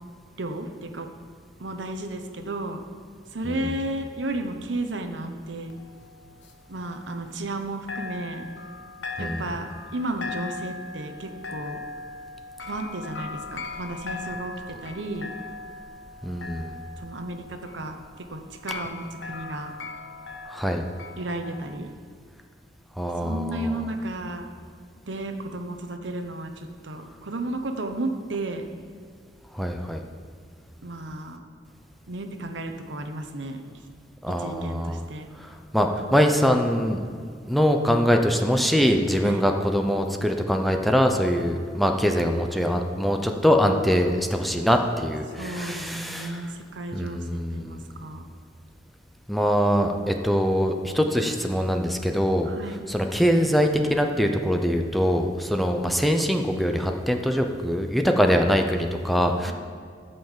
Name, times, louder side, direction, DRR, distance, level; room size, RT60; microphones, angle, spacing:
voice 1, 0.4-1.1 1.6-2.8 3.3-5.7 6.7-8.5 9.2-11.8 12.6-15.3 17.0-19.7 21.2-21.9 23.2-24.5 25.1-28.7 30.8-31.4 32.1-33.6 34.4-35.3 39.2-39.4 45.3-48.2 52.4-52.8, right 1 dB, 80° right, 6 dB, 1.0 m, -33 dB
sound 1, 5.7-7.6 7.9-21.8, left 3 dB, 90° left, 0.9 m, -39 dB
voice 2, 16.2-16.7 20.5-20.9 23.0-23.7 29.5-30.0 34.2-35.0 35.7-37.0 37.5-46.4 46.9-47.8 49.3-52.5 52.9-59.5, equal, ahead, 4 dB, 0.6 m, -23 dB
12.0 x 5.6 x 7.3 m, 2.1 s
head